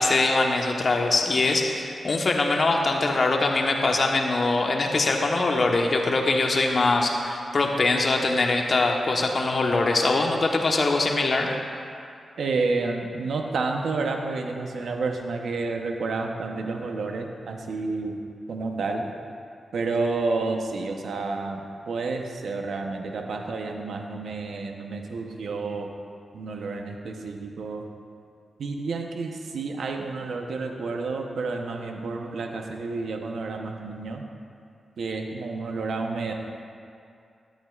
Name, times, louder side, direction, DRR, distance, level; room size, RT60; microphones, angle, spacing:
voice 1, 0.0-11.5, left 3 dB, 55° left, 2 dB, 1.1 m, -23 dB
voice 2, 12.4-18.2 18.5-19.1 19.7-25.9 26.3-27.8 28.6-34.2 35.0-36.3, right 3 dB, 80° right, 3 dB, 0.9 m, -30 dB
13.0 x 11.5 x 2.5 m, 2.5 s
cardioid pair, 50°, 0 cm